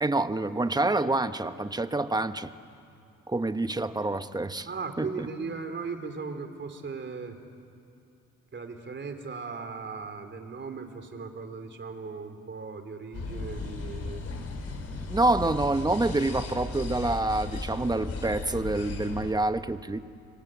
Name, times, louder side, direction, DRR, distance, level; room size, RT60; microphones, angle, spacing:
voice 1, 0.0-2.5 3.3-4.7 5.0-5.3 15.1-20.0, right 2 dB, 15° right, 10 dB, 1.1 m, -27 dB
voice 2, 4.7-7.4 8.5-14.2 15.0-15.2, right 4 dB, 40° right, 7 dB, 3.4 m, -38 dB
sound 1, 13.1-19.3, left 3 dB, 50° left, 3.8 m, -36 dB
25.5 x 25.0 x 9.1 m, 2.7 s
cardioid pair, 90°, 30 cm